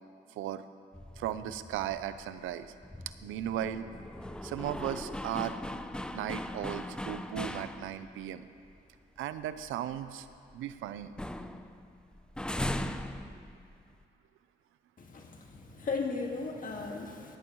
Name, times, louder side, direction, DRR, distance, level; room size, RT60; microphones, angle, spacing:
voice 1, 0.3-0.6 1.2-2.7 3.2-3.9 4.4-5.6 6.1-8.4 9.2-10.3 10.5-11.1, right 11 dB, 85° right, 12 dB, 0.6 m, -36 dB
sound 1, 0.9-8.3 8.7-8.8 9.2-10.7 11.0-14.0, left 1 dB, 5° left, 0.5 m, -40 dB
voice 2, 15.0-17.4, left 4 dB, 45° left, 1 dB, 1.9 m, -36 dB
18.0 x 14.5 x 3.1 m, 2.4 s
cardioid pair, 90°, 20 cm